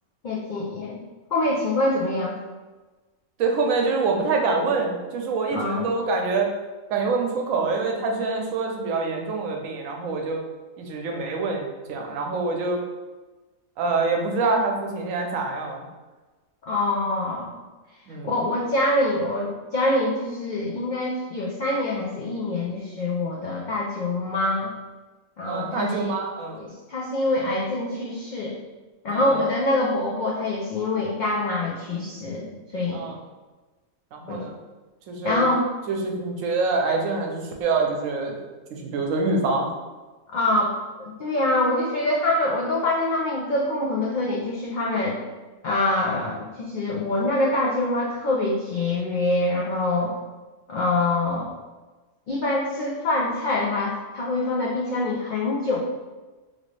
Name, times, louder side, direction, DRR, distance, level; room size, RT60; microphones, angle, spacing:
voice 1, 0.2-1.0 1.3-2.4 5.5-5.8 16.6-17.5 18.2-24.7 25.4-26.1 26.5-28.6 29.0-33.0 34.3-34.4 35.2-35.7 40.3-40.7 41.0-45.2 45.6-50.1 50.7-51.5 52.3-55.8, left 2 dB, 80° left, -4 dB, 0.4 m, -25 dB
voice 2, 3.4-6.5 6.9-10.4 10.8-12.8 13.8-15.8 18.1-18.3 25.4-26.6 29.1-29.5 32.9-33.2 34.1-34.5 35.1-35.5 35.9-38.4 38.8-39.7, right 3 dB, 80° right, 2 dB, 1.0 m, -25 dB
2.9 x 2.6 x 3.1 m, 1.2 s
omnidirectional pair, 1.3 m